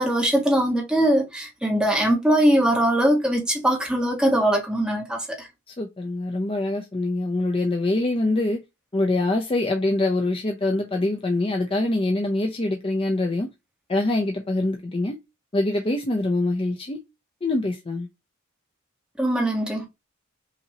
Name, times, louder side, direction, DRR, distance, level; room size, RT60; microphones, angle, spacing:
voice 1, 0.0-5.5 19.2-19.9, right 1 dB, 5° right, 1.3 m, -21 dB
voice 2, 5.7-8.6 8.9-13.5 13.9-15.2 15.5-17.0 17.4-18.1, left 2 dB, 25° left, 0.6 m, -24 dB
5.7 x 2.9 x 2.8 m
head